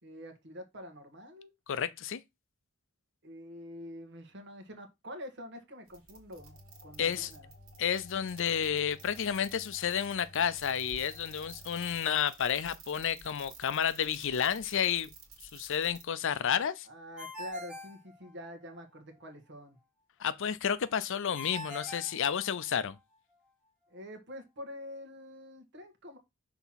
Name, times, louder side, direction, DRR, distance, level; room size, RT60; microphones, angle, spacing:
voice 1, 0.0-1.5 3.2-6.6 6.8-7.5 16.8-19.8 23.9-26.2, equal, 60° right, 1.5 m, -46 dB
voice 2, 1.7-2.2 7.0-7.3 7.8-15.1 15.5-16.9 20.2-23.0, left 8 dB, 65° left, 0.5 m, -31 dB
sound 1, 5.9-16.0, right 5 dB, 75° right, 2.1 m, -53 dB
sound 2, 6.4-11.9, left 2 dB, 35° left, 2.8 m, -55 dB
Ringtone, 17.2-18.8 21.3-23.0, left 2 dB, 5° right, 2.1 m, -44 dB
6.0 x 3.5 x 5.7 m
head